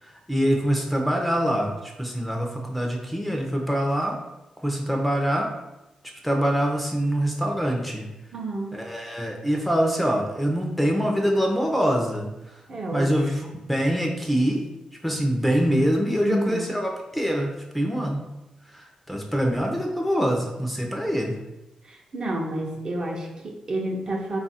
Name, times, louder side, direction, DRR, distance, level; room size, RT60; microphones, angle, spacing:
voice 1, 0.0-4.2 4.6-5.5 6.2-8.1 8.7-12.6 12.9-13.4 13.7-14.6 15.0-18.3 18.7-21.3, equal, ahead, 1 dB, 0.6 m, -24 dB
voice 2, 8.3-8.8 12.7-13.1 13.4-13.5 16.2-16.7 21.8-24.4, right 1 dB, 45° right, 0 dB, 0.7 m, -30 dB
3.7 x 2.4 x 4.1 m, 0.96 s
cardioid pair, 95°, 2 cm